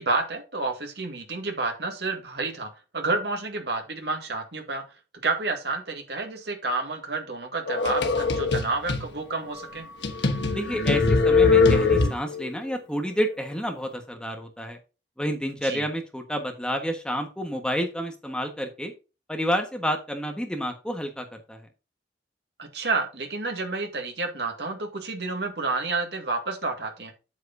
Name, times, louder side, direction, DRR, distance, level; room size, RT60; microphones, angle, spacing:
voice 1, 0.0-4.8 5.2-9.9 15.6-15.8 22.6-27.1, right 3 dB, 70° right, 5 dB, 1.9 m, -30 dB
sound 1, 7.7-9.1 9.6-9.7 10.0-12.5, left 4 dB, 85° left, 1.2 m, -21 dB
voice 2, 10.5-14.8 15.2-18.9 19.3-21.7, equal, 5° left, 4 dB, 1.3 m, -29 dB
8.2 x 7.7 x 2.7 m, 0.30 s
head